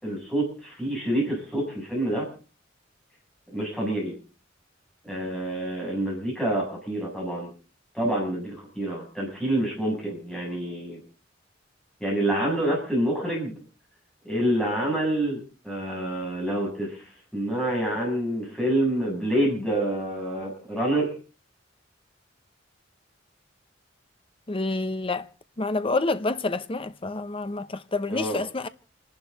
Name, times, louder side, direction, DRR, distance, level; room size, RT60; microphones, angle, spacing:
voice 1, 0.0-2.3 3.5-4.1 5.1-7.5 7.9-11.0 12.0-13.5 14.2-17.1 17.3-21.1 28.1-28.4, right 1 dB, 5° left, 7.7 m, -27 dB
voice 2, 24.5-25.3 25.6-28.7, left 3 dB, 30° left, 0.8 m, -28 dB
28.5 x 11.5 x 4.0 m
head